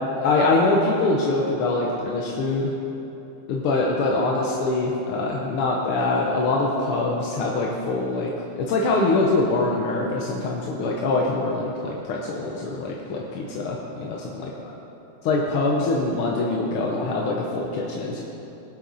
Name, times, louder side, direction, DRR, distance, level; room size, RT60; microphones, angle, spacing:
voice 1, 0.2-2.7 3.5-14.5 15.2-18.2, left 2 dB, 85° left, -2 dB, 1.9 m, -24 dB
18.5 x 7.5 x 4.1 m, 3.0 s
omnidirectional pair, 2.4 m